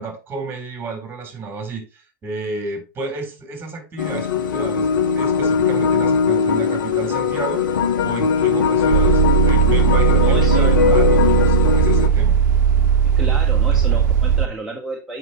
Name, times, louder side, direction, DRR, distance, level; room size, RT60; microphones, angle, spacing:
voice 1, 0.0-7.6 8.0-12.4 13.7-13.8, right 3 dB, 20° right, 3.8 m, -31 dB
sound 1, 4.0-12.1, left 6 dB, 70° left, 1.2 m, -19 dB
sound 2, 8.9-14.5, right 8 dB, 60° right, 0.8 m, -17 dB
voice 2, 10.1-10.7 13.0-15.2, right 2 dB, 5° right, 1.8 m, -31 dB
7.8 x 5.9 x 4.3 m
figure-of-eight pair, 90°, 11 cm